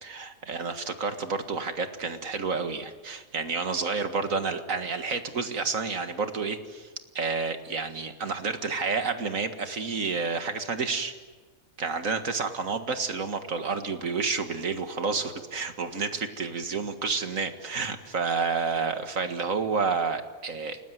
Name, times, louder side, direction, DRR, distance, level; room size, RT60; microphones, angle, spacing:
voice 1, 0.0-6.9 7.2-11.1 11.8-20.8, right 4 dB, 70° right, 8 dB, 2.2 m, -30 dB
29.0 x 19.5 x 9.5 m, 1.3 s
omnidirectional pair, 1.5 m